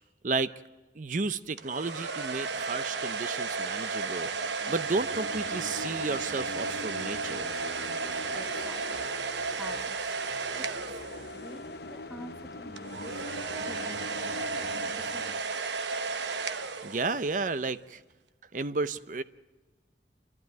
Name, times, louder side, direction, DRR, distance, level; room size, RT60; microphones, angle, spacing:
voice 1, 1.0-4.3 4.7-7.5 16.8-18.0 18.5-19.2, right 3 dB, 45° right, 13 dB, 0.6 m, -32 dB
sound 1, 1.6-11.7 12.8-17.5, right 4 dB, 75° right, 1.0 m, -34 dB
sound 2, 4.3-15.4, left 2 dB, 60° left, 0.8 m, -43 dB
voice 2, 7.8-9.2 9.6-10.1 10.5-11.0 11.3-13.2 13.6-14.6 14.9-15.5, equal, 5° right, 4 dB, 1.0 m, -48 dB
29.5 x 12.0 x 9.3 m, 1.3 s
head